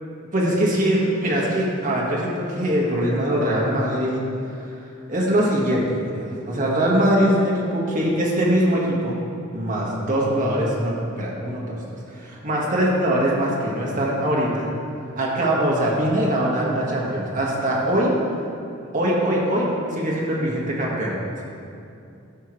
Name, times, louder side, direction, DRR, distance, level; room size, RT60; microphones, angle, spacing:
voice 1, 0.3-4.2 4.6-4.7 5.1-9.2 9.5-11.8 12.1-14.7 15.2-18.1 18.9-19.6 19.9-21.4, right 1 dB, 40° right, -4 dB, 1.7 m, -22 dB
13.5 x 5.7 x 3.2 m, 2.6 s
head